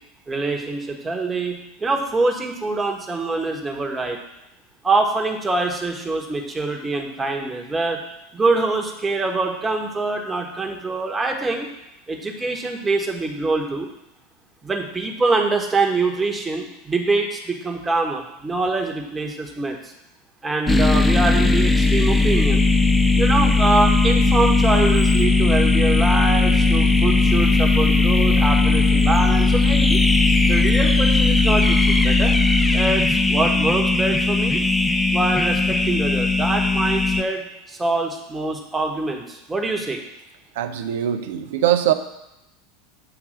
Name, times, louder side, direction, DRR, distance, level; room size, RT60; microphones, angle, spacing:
voice 1, 0.3-4.2 4.8-8.0 8.3-11.7 12.1-13.9 14.6-19.9 20.4-22.6 23.2-30.0 30.4-32.4 32.7-34.6 35.1-40.0, right 3 dB, 15° right, 2 dB, 1.3 m, -24 dB
sound 1, 20.7-37.2, left 3 dB, 10° left, 0.5 m, -18 dB
voice 2, 40.6-41.9, right 11 dB, 65° right, 8 dB, 0.6 m, -21 dB
7.9 x 3.3 x 6.4 m, 0.88 s
figure-of-eight pair, 80°, 0 cm